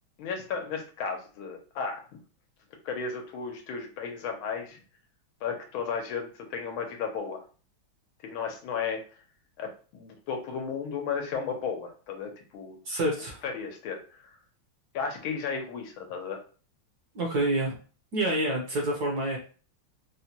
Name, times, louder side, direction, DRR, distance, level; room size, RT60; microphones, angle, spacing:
voice 1, 0.2-2.0 2.8-4.8 5.4-7.4 8.2-9.0 9.6-12.8 13.4-14.4 14.9-16.4, left 6 dB, 80° left, 3 dB, 1.5 m, -34 dB
voice 2, 12.8-13.4 17.1-17.8 18.1-19.4, right 1 dB, 60° right, 0 dB, 1.2 m, -27 dB
4.2 x 2.2 x 2.8 m, 0.38 s
omnidirectional pair, 2.3 m